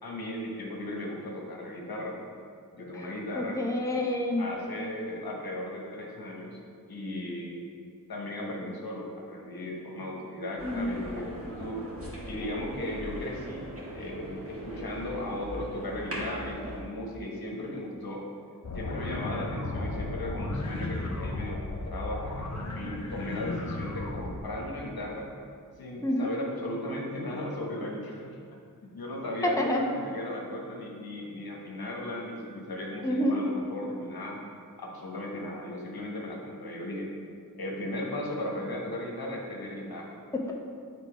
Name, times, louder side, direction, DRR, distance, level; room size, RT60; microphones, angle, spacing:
voice 1, 0.0-2.2 2.7-3.6 4.4-6.6 6.9-7.7 8.1-11.8 12.3-13.7 13.9-18.3 18.7-25.3 25.8-28.4 28.8-34.4 34.8-37.1 37.5-40.2, left 1 dB, 85° left, -1 dB, 1.2 m, -36 dB
voice 2, 3.3-4.5 10.6-10.9 26.0-26.3 29.6-29.8 33.0-33.4 40.3-40.5, left 1 dB, 10° left, 0 dB, 0.8 m, -28 dB
sound 1, 10.6-16.8, equal, 40° right, 1.8 m, -40 dB
sound 2, 18.6-24.4, left 2 dB, 50° left, 0.8 m, -35 dB
8.3 x 3.7 x 4.9 m, 2.3 s
wide cardioid pair, 65°, 35 cm